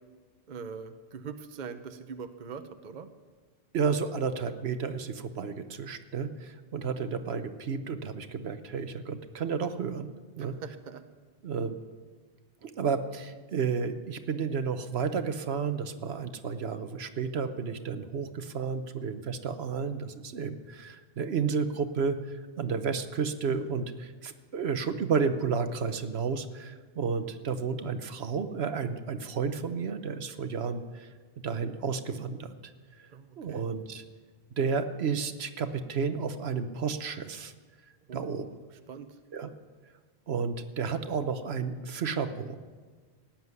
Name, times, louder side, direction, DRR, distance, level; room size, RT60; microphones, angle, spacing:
voice 1, 0.5-3.1 10.4-11.0 33.1-33.7 38.1-38.6 38.9-39.2, right 6 dB, 45° right, 8 dB, 0.9 m, -42 dB
voice 2, 3.7-10.1 10.4-10.5 11.4-11.8 12.6-22.2 22.6-31.1 31.4-32.5 33.4-34.0 34.6-37.5 38.1-38.5 39.3-39.5 40.3-42.5, right 5 dB, 70° right, 10 dB, 1.1 m, -32 dB
18.0 x 7.4 x 9.5 m, 1.5 s
omnidirectional pair, 1.1 m